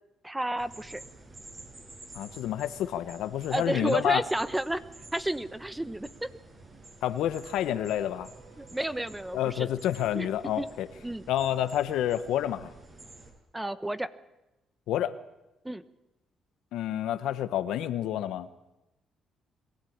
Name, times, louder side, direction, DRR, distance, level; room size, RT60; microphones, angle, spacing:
voice 1, 0.2-1.0 3.5-4.8 5.1-6.3 8.6-9.7 10.1-10.3 10.6-10.7 11.0-11.2 13.5-14.1 15.6-15.8, right 1 dB, 10° right, 13 dB, 1.1 m, -31 dB
sound 1, 0.6-13.3, right 2 dB, 35° right, 6.7 m, -50 dB
voice 2, 2.1-4.2 7.0-8.3 9.3-10.9 11.3-12.7 14.9-15.1 16.7-18.5, left 11 dB, 85° left, 12 dB, 1.0 m, -29 dB
sound 2, 7.5-9.8, right 4 dB, 90° right, 7.5 m, -56 dB
22.5 x 16.0 x 8.7 m, 0.98 s
cardioid pair, 90°, 0 cm